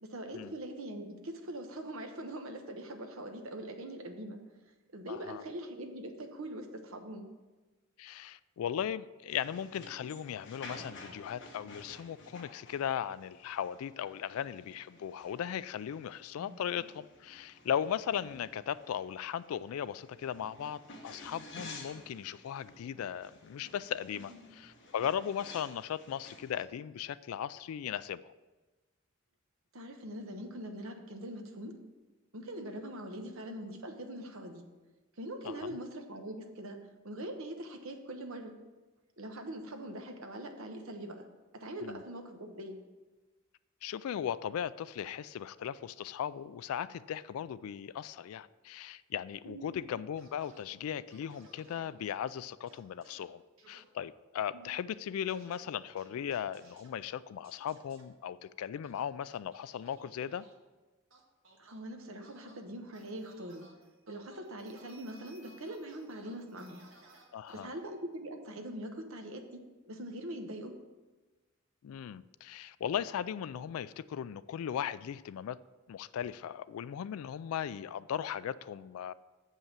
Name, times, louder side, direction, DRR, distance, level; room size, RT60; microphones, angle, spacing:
voice 1, 0.0-4.4 4.9-7.3 16.4-16.8 24.2-24.5 29.7-31.7 32.3-34.6 35.2-36.8 37.0-38.5 39.2-41.2 41.5-42.8 49.5-49.8 54.5-54.8 61.6-63.6 64.1-66.8 67.5-70.7, right 1 dB, 80° right, 5 dB, 1.1 m, -42 dB
voice 2, 5.1-5.4 8.0-28.3 35.4-35.7 41.8-42.0 43.8-53.4 53.7-60.4 67.3-67.7 71.8-75.6 75.9-79.1, left 9 dB, 90° left, 17 dB, 0.3 m, -37 dB
sound 1, 9.3-26.7, left 2 dB, 60° left, 1.4 m, -52 dB
sound 2, 50.2-50.6 51.1-51.9 52.7-53.2 53.6-53.8 55.3-55.6 56.0-56.9 57.4-58.0 58.8-60.5 61.1-61.8 62.2-62.6 62.9-63.7 64.1-64.4 64.7-67.6, right 2 dB, 65° right, 1.6 m, -59 dB
sound 3, 62.9-68.1, right 1 dB, 50° right, 2.1 m, -65 dB
6.8 x 5.5 x 7.3 m, 1.2 s
head